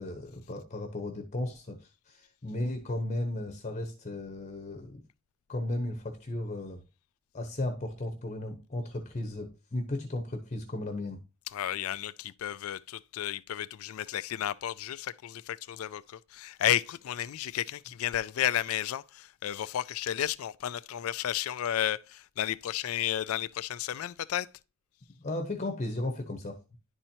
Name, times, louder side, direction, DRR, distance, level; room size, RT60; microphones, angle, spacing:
voice 1, 0.0-1.8 2.1-5.0 5.5-6.8 7.3-11.2 25.2-26.6, left 1 dB, 35° left, 0.9 m, -35 dB
voice 2, 11.5-24.5, left 11 dB, 75° left, 0.3 m, -32 dB
11.0 x 4.4 x 2.7 m
head